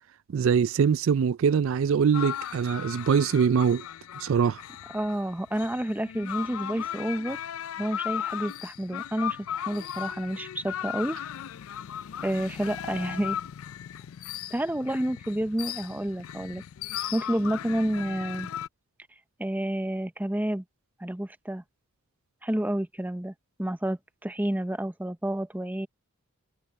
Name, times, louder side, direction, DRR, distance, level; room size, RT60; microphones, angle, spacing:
voice 1, 0.3-3.8 4.2-4.6, right 6 dB, 60° right, 0.3 m, -23 dB
sound 1, 2.1-18.7, left 10 dB, 70° left, 0.4 m, -37 dB
voice 2, 4.9-7.4 7.8-11.2 12.2-13.4 14.5-16.6 17.1-18.5 19.4-20.6 21.0-21.6 22.4-23.3 23.6-25.9, right 1 dB, 10° right, 0.6 m, -29 dB
head